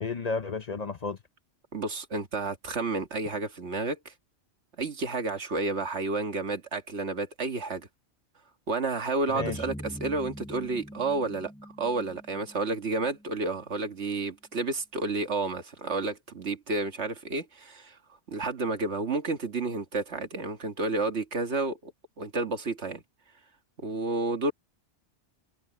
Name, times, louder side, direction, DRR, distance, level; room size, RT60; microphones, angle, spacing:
voice 1, 0.0-1.2 9.3-9.6, left 4 dB, 40° left, 0.7 m, -32 dB
voice 2, 1.7-4.1 4.8-7.9 8.7-11.5 11.8-18.0 18.3-21.9 22.2-23.0 23.8-24.5, right 3 dB, 75° right, 2.0 m, -31 dB
sound 1, 9.4-13.8, equal, 5° left, 6.3 m, -43 dB
omnidirectional pair, 1.2 m